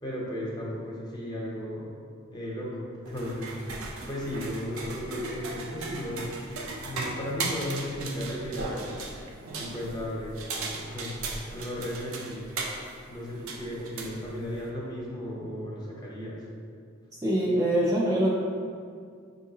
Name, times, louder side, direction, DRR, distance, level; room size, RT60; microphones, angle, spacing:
voice 1, 0.0-1.9 2.3-3.5 4.1-6.3 6.8-8.9 9.5-11.1 11.5-12.4 13.1-16.4, equal, 20° left, -4 dB, 0.7 m, -35 dB
sound 1, 3.1-14.7, right 3 dB, 75° right, 0.5 m, -37 dB
voice 2, 17.2-18.3, right 1 dB, 15° right, -5 dB, 0.3 m, -24 dB
5.6 x 2.7 x 2.7 m, 2.2 s
head